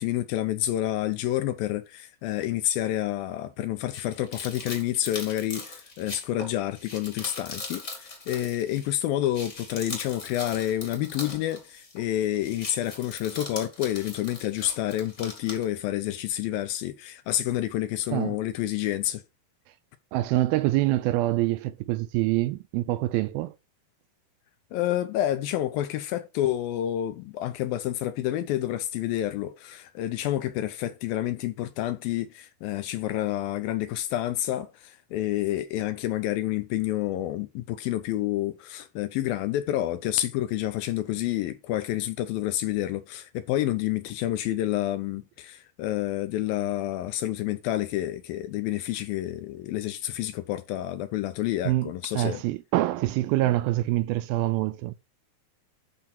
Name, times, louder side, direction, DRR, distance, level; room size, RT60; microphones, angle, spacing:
voice 1, 0.0-19.2 24.7-52.4, left 13 dB, 75° left, 2.3 m, -29 dB
sound 1, 3.9-8.9 9.2-12.1 12.3-15.6, left 3 dB, 25° left, 1.7 m, -40 dB
voice 2, 20.1-23.6 51.7-54.9, right 16 dB, 80° right, 2.3 m, -25 dB
12.0 x 3.9 x 4.3 m
omnidirectional pair, 4.5 m